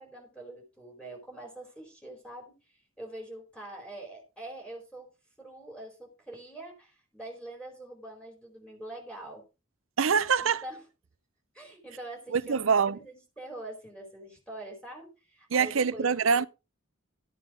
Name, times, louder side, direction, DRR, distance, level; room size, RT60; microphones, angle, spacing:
voice 1, 0.0-2.5 3.0-5.1 5.4-9.4 10.4-10.8 11.5-16.1, right 1 dB, 5° left, 4.5 m, -44 dB
voice 2, 10.0-10.6 12.3-13.0 15.5-16.5, right 6 dB, 70° right, 0.6 m, -24 dB
13.5 x 9.1 x 3.7 m
head